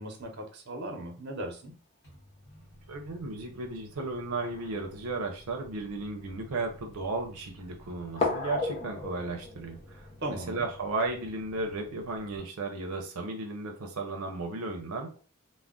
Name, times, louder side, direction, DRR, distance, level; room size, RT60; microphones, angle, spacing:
voice 1, 0.0-1.7 10.2-10.7, right 1 dB, 50° right, 2 dB, 0.7 m, -37 dB
Microwave oven, 2.0-12.4, equal, 45° left, 0.9 m, -53 dB
sound 1, 2.9-3.0 4.2-5.5 6.3-6.4 8.2-11.3, left 3 dB, 30° left, 0.6 m, -36 dB
voice 2, 2.9-15.2, right 3 dB, 85° right, 3 dB, 0.5 m, -35 dB
2.3 x 2.1 x 3.6 m, 0.37 s
head